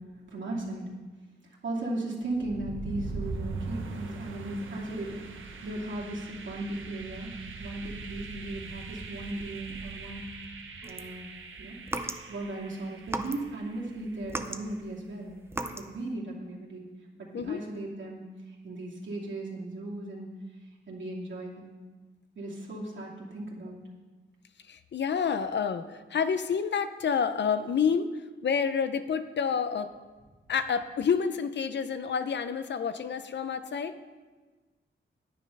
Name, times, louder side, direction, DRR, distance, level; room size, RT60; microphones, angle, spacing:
voice 1, 0.1-0.9 1.6-5.2 5.6-7.3 7.6-10.3 10.9-11.3 11.6-11.8 12.3-15.4 15.7-16.9 17.2-18.3 18.6-20.4 20.9-21.8 22.4-23.8, right 2 dB, 75° right, -3 dB, 2.6 m, -37 dB
sound 1, 2.3-14.2, right 4 dB, 90° right, 1.2 m, -41 dB
sound 2, 10.8-12.6 13.0-13.7 14.0-16.0, right 2 dB, 10° right, 0.6 m, -37 dB
voice 2, 24.7-28.1 28.4-29.9 30.5-34.0, left 6 dB, 65° left, 11 dB, 0.6 m, -28 dB
9.8 x 9.7 x 5.4 m, 1.3 s
wide cardioid pair, 140°, 20 cm